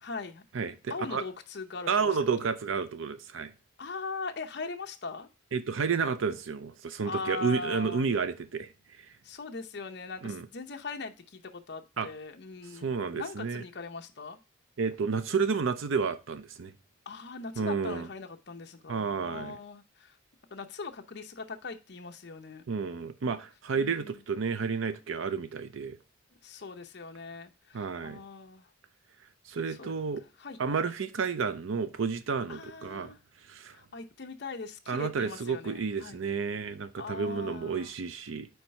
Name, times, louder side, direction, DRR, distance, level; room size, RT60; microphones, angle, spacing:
voice 1, 0.0-0.4 0.9-2.1 3.8-5.3 7.0-8.1 9.2-14.4 17.1-20.2 20.5-22.7 23.7-24.2 26.4-28.7 29.7-29.9 30.4-30.6 32.5-33.2 33.7-36.2 37.0-37.9, left 4 dB, 55° left, 0.7 m, -40 dB
voice 2, 0.5-1.2 1.9-3.5 5.5-8.7 10.2-10.5 12.0-12.1 12.8-13.6 14.8-16.7 17.6-18.1 18.9-19.6 22.7-26.0 27.7-28.2 29.5-30.2 30.6-33.1 33.5-33.8 34.9-38.5, right 5 dB, 85° right, 0.5 m, -31 dB
4.6 x 4.5 x 5.3 m
head